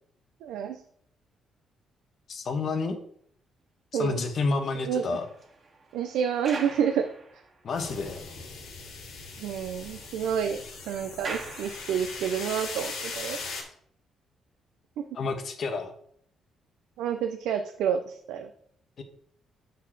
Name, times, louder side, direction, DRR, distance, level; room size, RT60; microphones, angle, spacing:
voice 1, 0.4-0.8 3.9-4.2 4.9-5.2 5.9-7.1 9.4-13.4 17.0-18.5, right 8 dB, 90° right, 7 dB, 0.5 m, -29 dB
voice 2, 2.3-3.0 3.9-5.2 7.6-8.2 15.1-15.9 19.0-19.1, left 3 dB, 55° left, 6 dB, 1.3 m, -29 dB
sound 1, 4.3-8.0 8.3-8.4 8.8-8.9 9.1-12.4 13.1-13.3, right 3 dB, 40° right, 1.6 m, -44 dB
sound 2, 7.7-13.6, left 4 dB, 85° left, 2.3 m, -39 dB
8.3 x 4.1 x 4.5 m, 0.64 s
cardioid pair, 90°, 0 cm